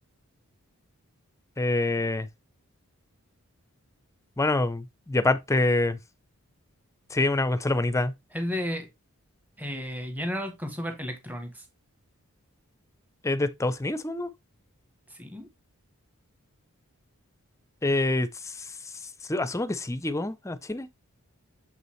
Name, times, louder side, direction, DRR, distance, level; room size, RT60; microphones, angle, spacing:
voice 1, 1.6-2.3 4.4-6.0 7.1-8.1 13.2-14.3 17.8-18.5 19.3-20.9, left 2 dB, 15° left, 0.5 m, -26 dB
voice 2, 8.3-8.9 9.6-11.6 15.2-15.5, equal, 5° right, 1.6 m, -33 dB
7.0 x 5.4 x 3.2 m
head